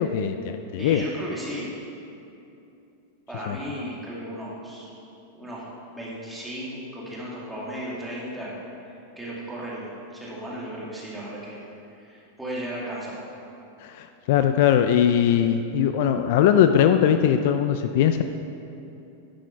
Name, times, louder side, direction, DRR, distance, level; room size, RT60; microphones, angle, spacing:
voice 1, 0.0-1.0 3.5-3.6 13.8-18.2, left 9 dB, 55° left, 8 dB, 0.4 m, -20 dB
voice 2, 0.8-1.7 3.3-4.9 5.3-8.6 8.8-11.6 12.0-13.2, equal, 5° right, -7 dB, 2.2 m, -35 dB
11.0 x 6.3 x 5.8 m, 2.8 s
supercardioid pair, 155°, 0 cm